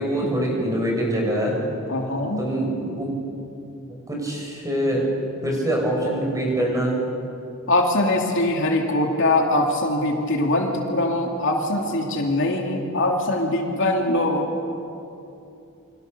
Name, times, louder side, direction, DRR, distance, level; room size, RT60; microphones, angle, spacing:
voice 1, 0.0-1.5 2.4-3.1 4.1-5.0 5.4-6.9, right 1 dB, 15° right, -1 dB, 6.4 m, -24 dB
voice 2, 1.9-2.4 7.7-14.5, left 1 dB, 60° left, 1 dB, 2.8 m, -22 dB
27.5 x 25.5 x 6.9 m, 2.7 s
head